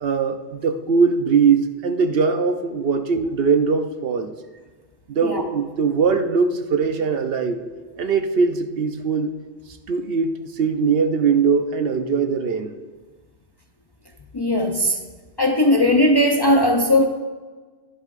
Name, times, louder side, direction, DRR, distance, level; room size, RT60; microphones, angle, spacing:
voice 1, 0.0-4.3 5.1-7.6 8.0-9.3 9.9-12.8, right 5 dB, 65° right, 7 dB, 0.8 m, -21 dB
voice 2, 14.3-15.0 15.4-17.1, left 1 dB, 30° left, 2 dB, 0.5 m, -18 dB
11.0 x 10.5 x 2.5 m, 1.4 s
omnidirectional pair, 1.1 m